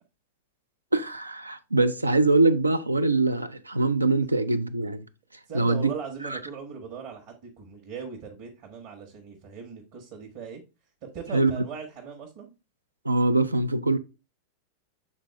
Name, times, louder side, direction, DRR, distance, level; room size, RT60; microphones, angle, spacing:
voice 1, 0.9-5.0 5.5-5.9 6.3-6.4 11.3-11.5 13.0-14.0, right 2 dB, 80° right, 0.5 m, -23 dB
voice 2, 5.5-10.6 11.1-12.5, right 6 dB, 45° right, 1.2 m, -39 dB
7.3 x 3.9 x 3.4 m
figure-of-eight pair, 90°, 0 cm